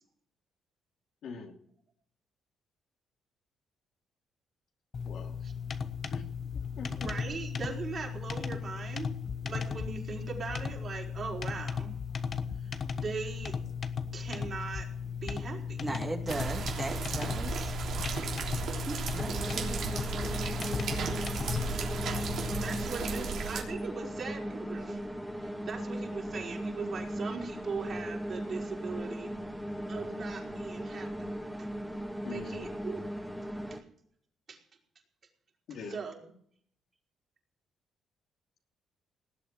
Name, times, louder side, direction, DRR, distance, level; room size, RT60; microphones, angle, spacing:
voice 1, 1.2-1.6 5.0-5.4 6.1-6.2 6.8-7.1 23.1-23.2 32.2-32.7 35.7-36.0, left 5 dB, 70° left, 3 dB, 2.8 m, -42 dB
sound 1, 4.9-22.8, left 6 dB, 45° left, 1.2 m, -36 dB
voice 2, 7.0-9.2 9.4-11.9 12.6-13.6 14.1-15.9 21.4-21.5 22.6-25.0 25.4-29.3 29.9-31.3 31.6-31.7 32.3-33.1 33.7-33.8 34.5-34.6 35.9-36.2, right 5 dB, 50° right, -1 dB, 5.1 m, -40 dB
voice 3, 15.8-17.8 18.9-20.0, right 2 dB, 25° right, 2 dB, 2.1 m, -38 dB
sound 2, 16.3-23.6, right 5 dB, 65° right, 3.4 m, -35 dB
sound 3, 19.2-33.8, equal, ahead, 2.5 m, -38 dB
18.5 x 8.3 x 7.5 m, 0.64 s
cardioid pair, 90°, 0 cm